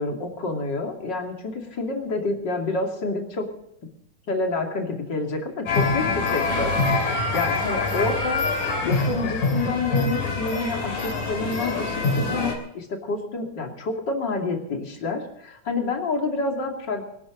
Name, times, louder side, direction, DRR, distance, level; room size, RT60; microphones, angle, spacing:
voice 1, 0.0-3.5 4.3-8.4 8.8-17.0, left 3 dB, 35° left, 2 dB, 3.0 m, -28 dB
sound 1, 5.7-12.5, left 3 dB, 80° left, 4.7 m, -25 dB
25.0 x 11.5 x 3.9 m, 0.75 s
omnidirectional pair, 3.6 m